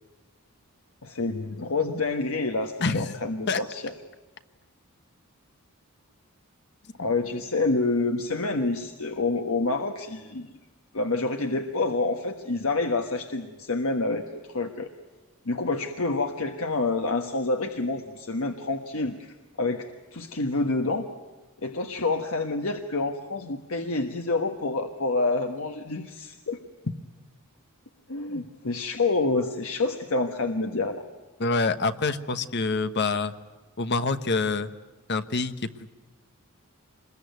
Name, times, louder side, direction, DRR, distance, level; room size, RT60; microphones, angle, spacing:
voice 1, 1.0-3.9 7.0-10.5 10.9-14.2 14.5-14.9 15.4-21.1 21.6-26.6 28.1-31.0, left 3 dB, 70° left, 5 dB, 1.3 m, -28 dB
voice 2, 31.4-33.3 33.8-34.7 35.1-35.5, left 3 dB, 50° left, 10 dB, 1.1 m, -26 dB
26.0 x 21.5 x 9.4 m, 1.2 s
head